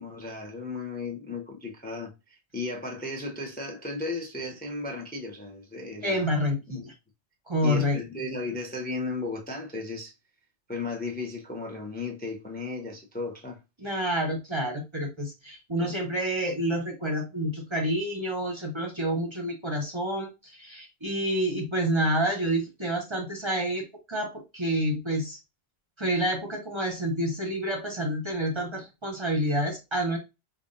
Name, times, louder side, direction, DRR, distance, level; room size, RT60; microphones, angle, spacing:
voice 1, 0.0-6.3 6.7-6.9 7.6-10.1 10.7-13.6 15.8-15.9, left 3 dB, 10° left, 0.5 m, -35 dB
voice 2, 6.0-6.9 7.5-8.0 13.8-25.4 26.0-30.2, equal, 30° right, 0.7 m, -28 dB
5.2 x 2.4 x 2.5 m
omnidirectional pair, 1.1 m